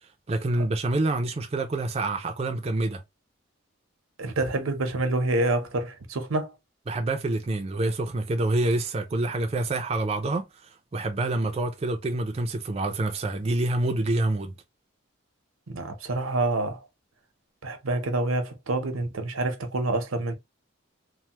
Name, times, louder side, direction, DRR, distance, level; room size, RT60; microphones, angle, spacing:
voice 1, 0.3-3.0 6.9-14.5, right 2 dB, 30° right, 0.3 m, -27 dB
voice 2, 4.2-6.5 15.7-16.8 17.6-20.3, right 2 dB, 90° right, 0.7 m, -27 dB
3.2 x 2.0 x 2.8 m
head